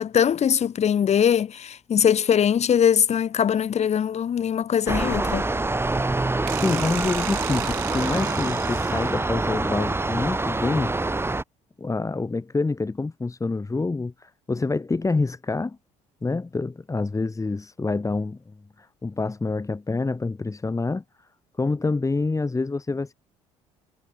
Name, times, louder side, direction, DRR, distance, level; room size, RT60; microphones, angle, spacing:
voice 1, 0.0-5.5, left 8 dB, 45° left, 1.3 m, -21 dB
sound 1, 4.9-11.4, right 2 dB, 15° right, 2.7 m, -26 dB
voice 2, 6.5-10.9 11.8-15.8 16.2-21.0 21.6-23.1, left 3 dB, 20° left, 2.2 m, -27 dB
sound 2, 6.5-9.4, right 31 dB, 80° right, 0.8 m, -35 dB
supercardioid pair, 65°, 15 cm